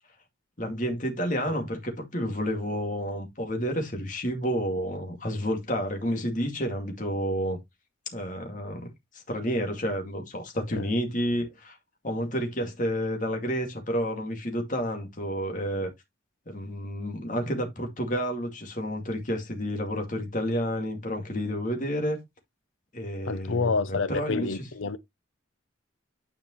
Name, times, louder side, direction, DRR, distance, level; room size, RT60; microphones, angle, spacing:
voice 1, 0.6-7.6 8.1-8.9 9.3-11.8 12.0-15.9 16.5-22.2 22.9-23.7 24.1-24.6, equal, 40° left, 2.2 m, -30 dB
voice 2, 23.2-25.0, left 4 dB, 75° left, 0.7 m, -28 dB
9.7 x 5.1 x 3.1 m
head